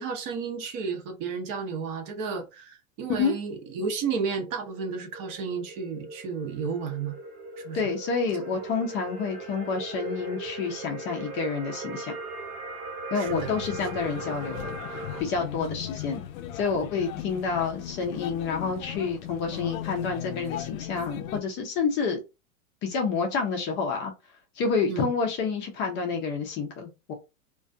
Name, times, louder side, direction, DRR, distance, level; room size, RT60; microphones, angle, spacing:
voice 1, 0.0-7.2 7.6-7.8 13.2-13.5 15.6-15.8 24.9-25.1, right 5 dB, 40° right, 0.6 m, -32 dB
sound 1, 3.4-15.2, right 2 dB, 60° right, 1.2 m, -39 dB
voice 2, 7.7-12.1 13.1-16.2 16.5-22.2 22.8-24.1 24.6-27.1, left 5 dB, 30° left, 0.4 m, -29 dB
sound 2, 13.2-21.4, left 12 dB, 80° left, 0.5 m, -37 dB
2.4 x 2.2 x 2.5 m
hypercardioid pair, 125°, 41 cm